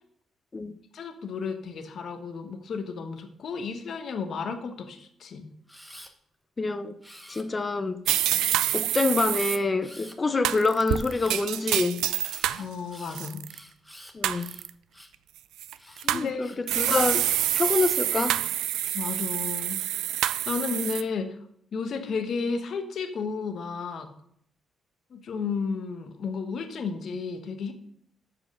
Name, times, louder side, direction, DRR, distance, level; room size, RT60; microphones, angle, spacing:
voice 1, 0.9-5.4 12.6-13.4 16.1-16.5 18.9-19.8 20.5-21.3 21.7-24.1 25.1-27.7, left 5 dB, 65° left, 1.2 m, -32 dB
Camera, 5.7-6.1 7.0-7.8 8.4-9.0 9.8-10.2 11.1-11.5 12.2-15.2 15.8-16.9 17.6-18.4 19.0-19.5, equal, ahead, 1.1 m, -49 dB
voice 2, 6.6-7.0 7.3-8.0 8.7-12.0 14.1-14.5 16.0-17.3 17.5-18.4, left 3 dB, 30° left, 0.7 m, -26 dB
sound 1, 8.1-9.6 10.4-12.6 13.1-13.6 14.2-14.7 15.6-16.3 16.7-21.0, right 13 dB, 85° right, 0.3 m, -27 dB
7.5 x 4.9 x 6.5 m
supercardioid pair, 65°, 0 cm